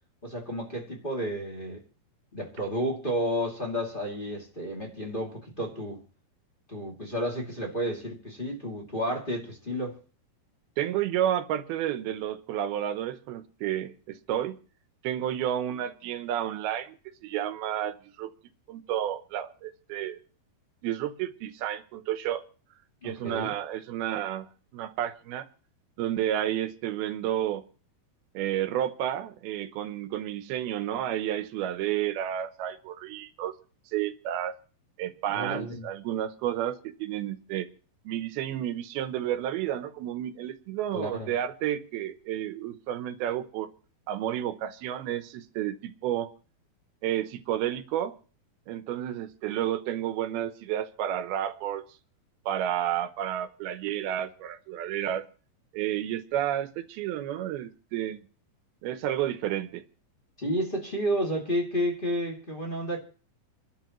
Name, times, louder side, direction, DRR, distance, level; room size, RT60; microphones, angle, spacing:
voice 1, 0.2-1.8 2.3-6.0 6.7-10.0 23.0-23.5 35.3-35.9 40.9-41.3 60.4-63.0, equal, 15° left, 2.2 m, -31 dB
voice 2, 10.8-14.6 15.0-17.0 17.2-18.3 18.7-20.2 20.8-22.4 23.0-24.5 24.7-25.5 26.0-27.6 28.3-33.6 33.9-34.5 35.0-37.7 38.0-43.7 44.1-46.3 47.0-48.1 48.7-51.9 52.5-55.2 55.7-58.2 58.8-59.8, right 11 dB, 80° right, 2.8 m, -31 dB
28.0 x 12.0 x 3.1 m
omnidirectional pair, 4.4 m